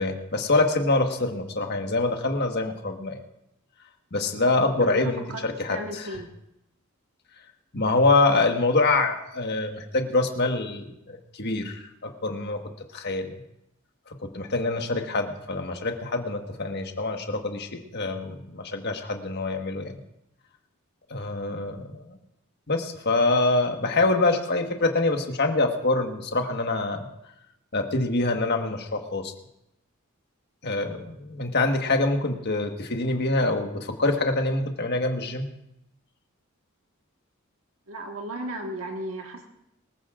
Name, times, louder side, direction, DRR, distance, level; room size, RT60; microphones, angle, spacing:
voice 1, 0.0-3.2 4.1-6.1 7.7-12.6 12.9-13.4 14.3-20.0 21.1-22.0 22.7-27.1 27.7-29.3 30.6-35.5, left 2 dB, 50° left, 4 dB, 1.5 m, -25 dB
voice 2, 4.8-6.3 37.9-39.5, right 1 dB, 85° right, 2 dB, 1.6 m, -35 dB
24.0 x 14.5 x 2.5 m, 0.83 s
head